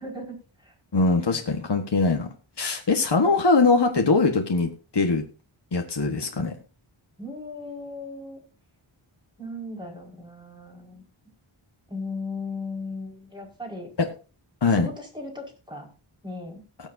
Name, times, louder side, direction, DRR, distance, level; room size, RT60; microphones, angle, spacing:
voice 1, 0.0-0.7 7.2-8.4 9.4-11.0 11.9-13.9 14.7-15.9 16.2-16.6, left 2 dB, 10° right, -2 dB, 5.4 m, -37 dB
voice 2, 0.9-2.3 2.6-5.2 5.7-6.5 14.0-14.1 14.6-14.9, left 3 dB, 55° left, 3 dB, 1.5 m, -22 dB
19.5 x 7.2 x 2.7 m, 0.33 s
wide cardioid pair, 55°, 50 cm